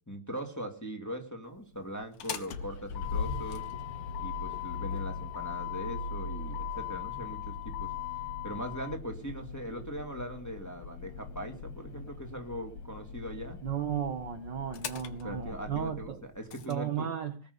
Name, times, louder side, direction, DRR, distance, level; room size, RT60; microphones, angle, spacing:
voice 1, 0.1-3.7 4.2-7.9 8.4-13.6 15.2-17.1, equal, 5° left, 3 dB, 1.9 m, -40 dB
Motor vehicle (road), 2.0-16.7, left 6 dB, 60° left, 1.6 m, -39 dB
voice 2, 13.6-16.2 16.7-17.4, right 9 dB, 70° right, 7 dB, 1.0 m, -34 dB
19.5 x 6.8 x 8.2 m, 0.36 s
omnidirectional pair, 3.6 m